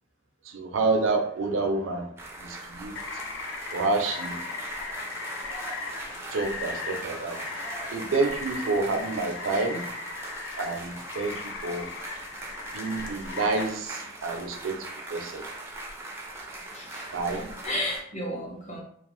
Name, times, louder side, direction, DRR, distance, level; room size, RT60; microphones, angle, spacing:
voice 1, 0.4-2.1 2.4-3.0 3.7-4.4 6.3-7.4 7.9-9.9 10.6-11.9 12.7-15.4 17.1-17.5, right 3 dB, 80° right, 4 dB, 0.5 m, -28 dB
sound 1, 2.2-18.0, right 2 dB, 15° right, 0.3 m, -40 dB
Rain, 3.0-13.6, left 4 dB, 70° left, 0.4 m, -38 dB
voice 2, 16.7-17.2 17.6-18.8, left 1 dB, 35° left, -1 dB, 0.6 m, -34 dB
2.4 x 2.3 x 3.0 m, 0.66 s
head